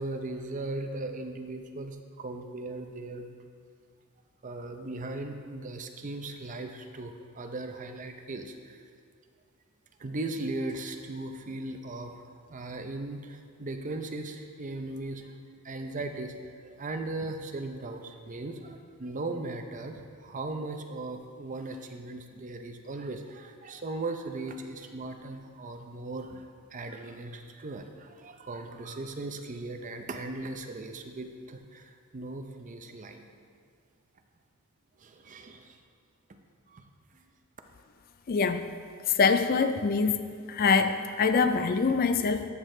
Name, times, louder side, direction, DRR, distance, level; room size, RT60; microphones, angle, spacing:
voice 1, 0.0-3.3 4.4-8.9 10.0-16.3 16.6-33.3 35.0-35.8 36.7-36.9 37.1-37.2, right 2 dB, 35° right, 5 dB, 0.6 m, -38 dB
voice 2, 38.3-38.7 39.1-40.2 40.5-42.5, left 5 dB, 40° left, 9 dB, 0.4 m, -24 dB
14.0 x 6.6 x 3.3 m, 2.1 s
head